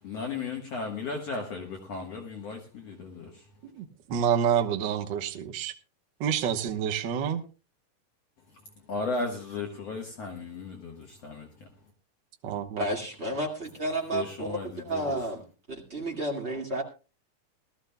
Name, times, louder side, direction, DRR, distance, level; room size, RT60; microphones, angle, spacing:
voice 1, 0.0-3.6 8.5-11.9 14.1-15.2, left 3 dB, 55° left, 2.3 m, -36 dB
voice 2, 3.7-5.7 6.2-7.4 12.4-12.8, right 8 dB, 75° right, 1.0 m, -28 dB
voice 3, 12.8-14.6 14.8-15.4 15.7-16.8, right 1 dB, 25° right, 1.6 m, -31 dB
20.5 x 13.5 x 2.2 m
omnidirectional pair, 3.8 m